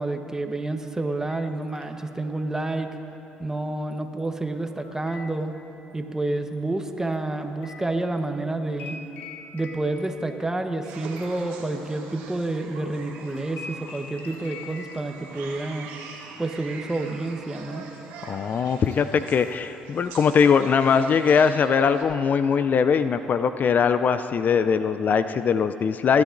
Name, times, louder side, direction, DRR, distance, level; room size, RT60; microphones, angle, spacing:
voice 1, 0.0-2.9 3.4-5.5 5.9-9.0 9.5-15.9 16.4-17.8, right 2 dB, 15° right, 6 dB, 1.1 m, -29 dB
sound 1, 1.3-2.3 3.9-6.0 6.5-12.7 13.0-15.9 16.2-17.1 17.4-17.7 18.2-20.7, left 3 dB, 70° left, 1.3 m, -46 dB
sound 2, 10.8-22.0, right 4 dB, 85° right, 1.3 m, -44 dB
voice 2, 18.2-26.2, left 6 dB, 50° left, 11 dB, 0.4 m, -21 dB
20.5 x 10.5 x 2.6 m, 2.9 s
supercardioid pair, 60°, 4 cm